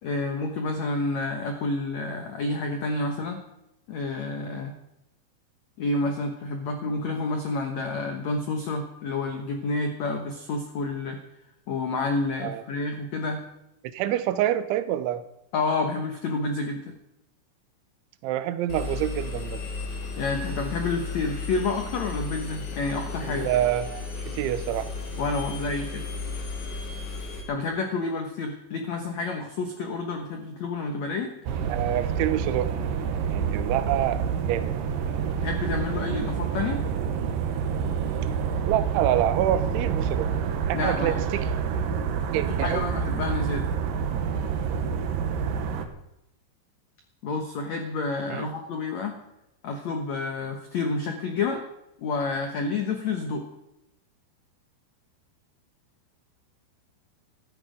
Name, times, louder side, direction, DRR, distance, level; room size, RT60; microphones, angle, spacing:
voice 1, 0.0-3.4 3.9-4.7 5.8-11.2 11.7-13.4 15.5-16.9 20.2-23.5 25.2-26.0 27.5-31.3 35.4-36.8 40.7-41.2 42.3-43.7 47.2-49.2 49.6-51.6 52.0-53.4, left 3 dB, 80° left, 4 dB, 1.5 m, -29 dB
voice 2, 13.8-15.2 18.2-19.6 23.2-24.9 31.7-32.7 33.3-34.7 38.7-40.3 40.7-41.5 42.3-42.9 48.3-48.5, right 12 dB, 90° right, 12 dB, 3.3 m, -27 dB
Engine, 18.7-27.4, left 4 dB, 45° left, 3.3 m, -34 dB
sound 1, 31.5-45.9, right 7 dB, 70° right, 2.3 m, -28 dB
14.5 x 13.0 x 5.1 m, 0.84 s
omnidirectional pair, 5.3 m